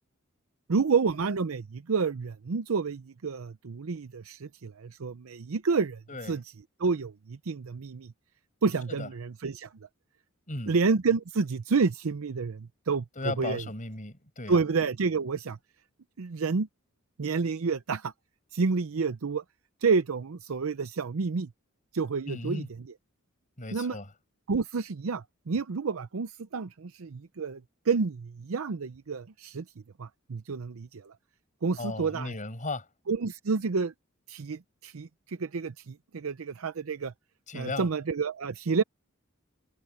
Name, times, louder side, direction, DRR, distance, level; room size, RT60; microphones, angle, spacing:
voice 1, 0.7-6.4 6.8-8.1 8.6-9.7 10.7-13.6 14.5-15.6 16.2-16.7 17.2-18.1 18.5-19.4 19.8-21.5 21.9-22.6 23.7-24.0 24.5-27.6 27.9-29.6 30.0-31.1 31.6-32.3 33.1-33.9 34.3-37.1 37.5-38.8, right 4 dB, 75° right, 0.6 m, -29 dB
voice 2, 6.1-6.4 8.9-9.1 10.5-10.8 13.2-14.6 22.3-22.7 23.6-24.1 31.8-32.9 37.5-37.9, left 2 dB, 40° left, 7.0 m, -36 dB
head